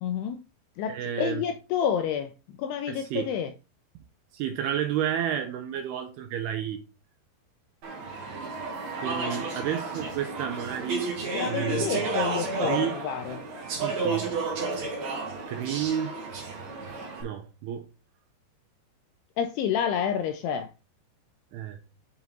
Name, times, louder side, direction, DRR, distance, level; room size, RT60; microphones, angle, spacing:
voice 1, 0.0-0.4 0.8-3.5 9.2-9.4 11.3-13.4 19.4-20.7, left 8 dB, 80° left, 2.3 m, -29 dB
voice 2, 0.9-1.4 2.9-3.3 4.3-6.8 9.0-11.1 11.4-12.1 12.6-13.0 13.8-14.3 15.5-16.1 17.2-17.8 21.5-21.8, right 9 dB, 80° right, 2.4 m, -31 dB
Speech / Chatter, 7.8-17.2, right 3 dB, 55° right, 2.2 m, -32 dB
7.1 x 4.2 x 3.8 m
omnidirectional pair, 5.1 m